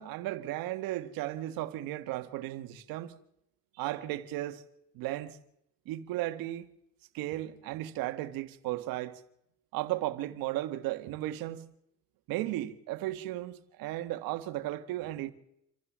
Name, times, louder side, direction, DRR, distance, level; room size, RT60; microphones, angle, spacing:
voice 1, 0.0-3.1 3.8-4.6 4.9-5.4 5.8-6.7 7.1-9.2 9.7-11.6 12.3-15.3, right 15 dB, 80° right, 1.7 m, -35 dB
27.5 x 14.5 x 7.4 m
supercardioid pair, 75°, 34 cm